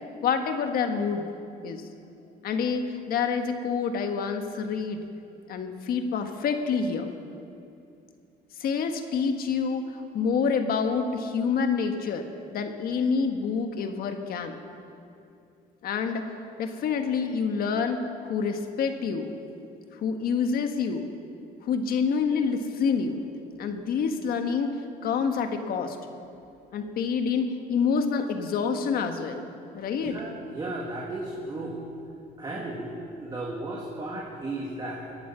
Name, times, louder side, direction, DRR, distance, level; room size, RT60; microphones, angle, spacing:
voice 1, 0.2-1.3 1.6-1.8 2.4-5.0 5.5-7.1 8.6-12.3 12.5-14.6 15.8-16.3 16.6-19.3 20.0-21.0 21.6-23.2 23.6-26.0 26.7-29.4 29.7-30.2, left 5 dB, 65° left, 6 dB, 1.4 m, -27 dB
voice 2, 30.0-31.8 32.4-35.2, right 2 dB, 25° right, -2 dB, 2.0 m, -35 dB
19.5 x 11.0 x 5.6 m, 2.6 s
cardioid pair, 110°, 17 cm